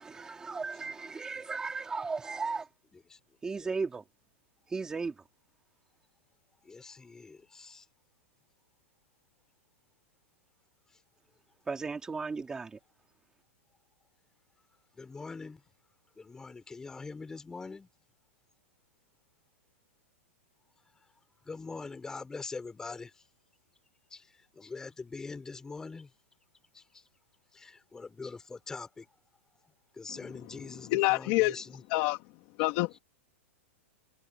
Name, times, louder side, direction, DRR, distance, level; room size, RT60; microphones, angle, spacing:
voice 1, 0.0-2.7 3.4-4.0 4.7-5.1 11.7-12.8, right 4 dB, 10° right, 3.3 m, -35 dB
voice 2, 6.7-7.8 15.0-15.6 16.2-17.9 21.5-23.1 24.1-24.2 24.6-26.1 27.6-29.1 30.0-31.6, left 4 dB, 10° left, 4.5 m, -43 dB
voice 3, 30.8-32.2 32.6-32.9, left 20 dB, 35° left, 2.5 m, -28 dB
supercardioid pair, 165°, 7 cm